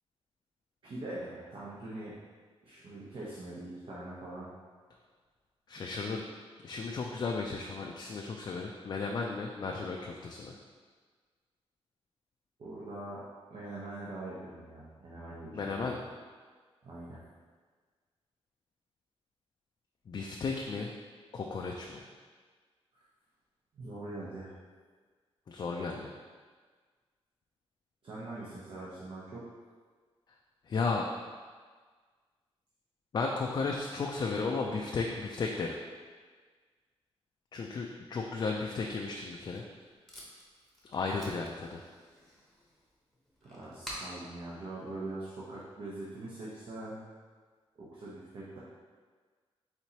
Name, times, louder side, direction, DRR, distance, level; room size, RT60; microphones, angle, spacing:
voice 1, 0.8-2.1 2.6-4.5 12.6-13.2 13.5-15.8 16.8-17.2 22.9-23.0 23.7-24.5 28.0-29.4 43.4-47.1 47.8-48.6, right 2 dB, 55° right, -7 dB, 0.8 m, -43 dB
voice 2, 5.7-6.2 6.6-10.6 15.5-16.0 20.1-20.9 21.3-22.1 25.5-26.1 30.7-31.3 33.1-35.8 37.5-39.6 40.9-41.8, left 4 dB, 40° left, 0 dB, 0.3 m, -34 dB
Packing tape duct tape, 39.1-45.6, equal, ahead, 0.9 m, -50 dB
4.5 x 4.0 x 2.8 m, 1.5 s
wide cardioid pair, 140°, 11 cm